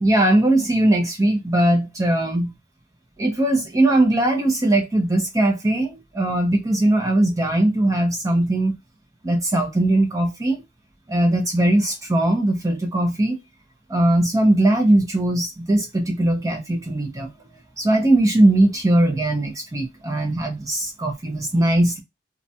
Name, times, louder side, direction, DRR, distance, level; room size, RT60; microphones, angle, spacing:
voice 1, 0.0-2.5 3.2-8.7 9.2-10.6 11.1-13.4 13.9-17.3 17.8-22.0, right 1 dB, 20° right, 0.5 m, -20 dB
2.4 x 2.1 x 2.6 m
head